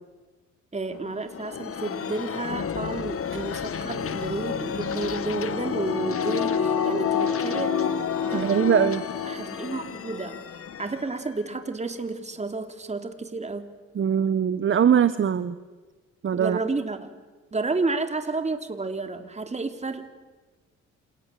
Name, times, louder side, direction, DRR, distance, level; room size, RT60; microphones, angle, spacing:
voice 1, 0.7-7.7 8.3-8.7 9.3-10.4 10.8-13.7 16.3-17.1 17.5-20.1, right 3 dB, 20° right, 7 dB, 3.0 m, -31 dB
sound 1, 0.9-12.4, left 7 dB, 50° left, 1.7 m, -34 dB
sound 2, 5.0-9.8 10.2-10.3, left 7 dB, 70° left, 7.1 m, -28 dB
voice 2, 8.3-9.0 14.0-15.6 16.2-16.6, right 8 dB, 40° right, 13 dB, 1.1 m, -21 dB
28.0 x 28.0 x 7.7 m, 1.3 s
cardioid pair, 90°, 30 cm